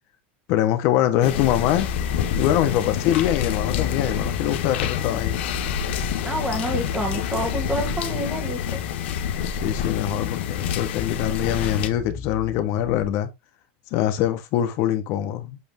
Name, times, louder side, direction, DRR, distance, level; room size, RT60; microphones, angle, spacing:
voice 1, 0.5-1.9 2.3-5.4 9.5-13.3 13.9-15.6, left 12 dB, 50° left, 1.2 m, -23 dB
sound 1, 1.2-11.9, left 10 dB, 90° left, 1.2 m, -27 dB
sound 2, 1.5-13.1, left 2 dB, 15° left, 0.5 m, -35 dB
voice 2, 6.2-8.8, right 1 dB, 10° right, 1.7 m, -28 dB
7.9 x 3.4 x 3.7 m
supercardioid pair, 160°, 6 cm